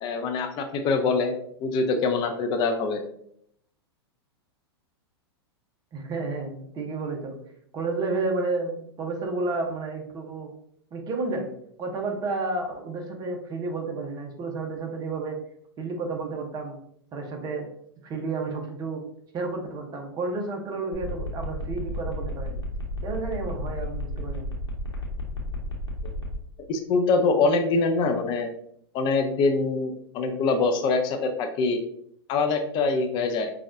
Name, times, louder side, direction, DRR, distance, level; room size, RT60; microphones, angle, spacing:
voice 1, 0.0-1.4 1.6-3.0 26.7-28.5 28.9-31.8 32.3-33.5, left 3 dB, 35° left, 5 dB, 0.5 m, -24 dB
voice 2, 5.9-7.4 7.7-10.5 10.9-11.5 11.8-15.4 15.8-16.8 17.1-17.7 18.0-19.0 19.3-22.6 23.0-24.5, right 3 dB, 30° right, 2 dB, 0.8 m, -31 dB
sound 1, 20.9-26.4, equal, 80° left, 1.0 m, -32 dB
5.2 x 2.4 x 2.5 m, 0.68 s
figure-of-eight pair, 100°, 14 cm